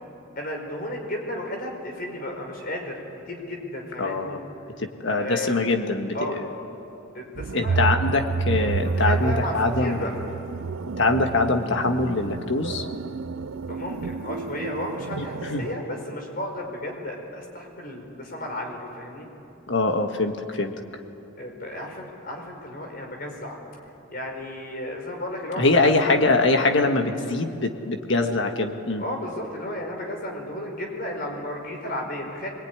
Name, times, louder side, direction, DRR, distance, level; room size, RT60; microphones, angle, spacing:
voice 1, 0.4-3.0 3.3-4.4 5.2-5.6 6.1-6.4 7.1-7.8 8.9-10.1 13.7-19.3 21.4-23.6 24.1-26.2 29.0-32.5, left 1 dB, 45° left, 2 dB, 4.9 m, -33 dB
voice 2, 4.0-4.4 4.8-6.5 7.5-10.0 11.0-12.9 15.2-15.7 19.7-20.7 25.6-29.0, left 2 dB, 65° left, 4 dB, 1.7 m, -23 dB
sound 1, 7.4-15.7, right 4 dB, 80° right, 0.5 m, -29 dB
25.5 x 22.0 x 9.7 m, 2.8 s
head